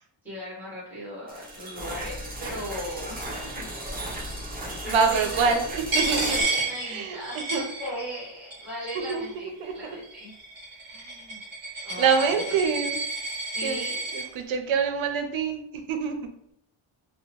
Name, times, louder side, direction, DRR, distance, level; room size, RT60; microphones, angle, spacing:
voice 1, 0.2-3.2 3.5-3.7 4.8-5.6 6.1-10.3 10.9-11.5 11.8-12.5 13.4-14.0, equal, 5° right, -7 dB, 1.1 m, -37 dB
sound 1, 1.3-6.4, right 1 dB, 20° right, 0.4 m, -35 dB
voice 2, 4.8-6.4 6.9-7.2 7.5-7.6 9.1-9.2 9.6-9.7 12.0-13.0 13.6-13.8 14.1-15.6 15.9-16.2, right 5 dB, 75° right, 6 dB, 0.5 m, -25 dB
Coin (dropping), 5.9-8.2 8.5-9.3 10.0-14.2, right 2 dB, 45° right, 0.9 m, -31 dB
2.8 x 2.0 x 2.8 m, 0.74 s
wide cardioid pair, 155°, 48 cm